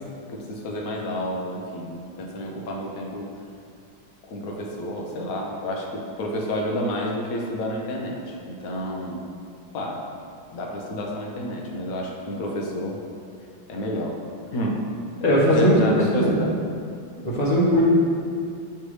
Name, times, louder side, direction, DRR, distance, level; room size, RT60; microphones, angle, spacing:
voice 1, 0.3-3.3 4.3-9.2 9.7-10.0 10.5-13.0 13.7-14.1 14.5-14.8 15.5-16.6 17.3-17.4, left 1 dB, 60° left, -1 dB, 1.1 m, -29 dB
voice 2, 15.2-16.3 17.2-17.8, equal, 25° left, -7 dB, 1.1 m, -19 dB
9.3 x 3.4 x 3.2 m, 2.4 s
omnidirectional pair, 2.1 m